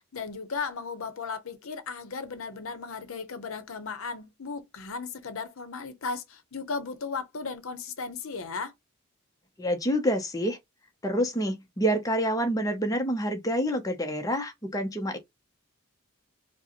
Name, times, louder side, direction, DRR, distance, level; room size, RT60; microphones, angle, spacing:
voice 1, 0.0-8.7, left 4 dB, 75° left, 0.7 m, -36 dB
voice 2, 9.6-10.6 11.0-15.2, equal, 15° left, 0.6 m, -27 dB
4.8 x 2.1 x 2.9 m
head